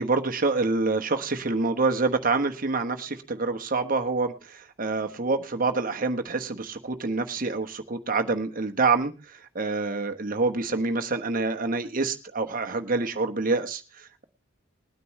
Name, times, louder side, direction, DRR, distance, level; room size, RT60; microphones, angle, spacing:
voice 1, 0.0-14.2, right 3 dB, 45° right, 6 dB, 1.1 m, -27 dB
21.0 x 9.3 x 3.1 m, 0.33 s
head